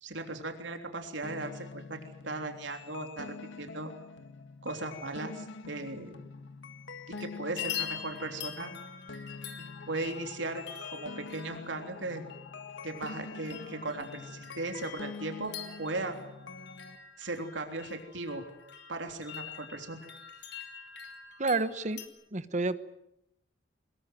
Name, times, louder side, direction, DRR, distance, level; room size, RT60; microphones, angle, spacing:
voice 1, 0.0-2.0 2.2-3.9 4.6-6.1 7.1-8.7 9.9-10.6 10.9-12.2 12.8-15.5 15.8-16.2 17.2-18.4 18.9-20.0, right 2 dB, 80° right, 5 dB, 3.3 m, -37 dB
sound 1, 1.2-17.0, left 4 dB, 90° left, 1.8 m, -45 dB
sound 2, 6.9-7.3 7.6-22.1, left 9 dB, 65° left, 3.8 m, -44 dB
voice 2, 21.4-22.0 22.3-22.8, right 3 dB, 40° right, 13 dB, 1.3 m, -29 dB
22.5 x 21.5 x 9.3 m, 0.83 s
head